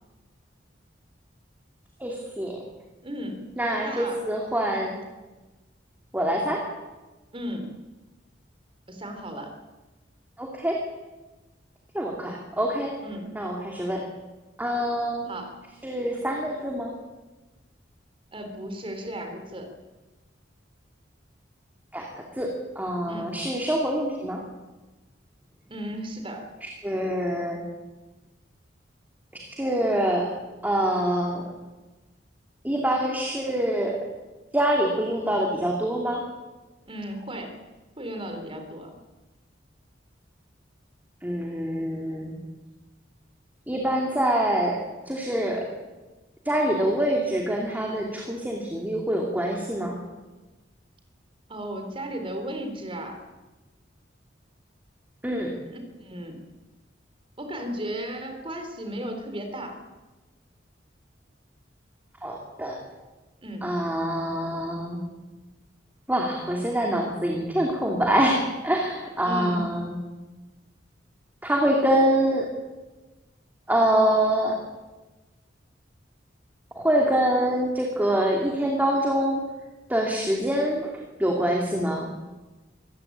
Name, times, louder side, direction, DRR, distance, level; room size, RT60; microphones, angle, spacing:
voice 1, 2.0-2.6 3.6-5.0 6.1-6.6 10.4-10.8 11.9-12.9 13.3-14.0 14.6-15.3 15.8-16.9 21.9-22.1 22.4-24.4 26.6-27.6 29.3-30.3 30.6-31.4 32.6-34.0 34.5-36.2 41.2-42.4 43.7-44.8 45.0-45.7 46.4-50.0 55.2-55.5 62.2-62.8 63.6-65.0 66.1-70.0 71.4-72.5 73.7-74.6 76.7-79.4 79.9-80.9 81.2-82.1, right 1 dB, 10° right, 0 dB, 2.8 m, -25 dB
voice 2, 3.0-3.5 3.8-4.2 4.7-4.8 7.3-7.7 8.9-9.5 13.0-13.3 15.3-15.5 18.3-19.7 23.1-23.4 25.7-26.5 36.9-37.6 38.0-39.0 51.5-53.2 55.7-56.4 57.4-59.8 63.4-63.7 69.2-69.7, right 1 dB, 30° right, 6 dB, 3.8 m, -35 dB
24.5 x 15.5 x 8.8 m, 1.2 s
head